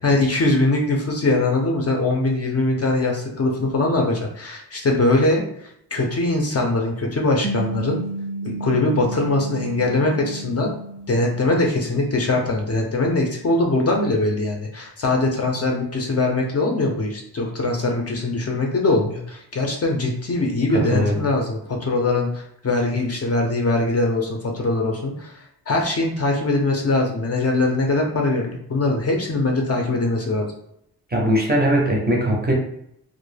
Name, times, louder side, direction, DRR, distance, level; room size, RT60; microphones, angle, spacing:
voice 1, 0.0-8.0 8.4-10.7 11.1-30.5, left 2 dB, 40° left, 0 dB, 0.4 m, -22 dB
sound 1, 7.4-12.1, right 2 dB, 85° right, 0.7 m, -32 dB
voice 2, 20.7-21.2 31.1-32.5, equal, 25° right, -1 dB, 0.5 m, -20 dB
2.2 x 2.0 x 3.1 m, 0.74 s
wide cardioid pair, 135°, 39 cm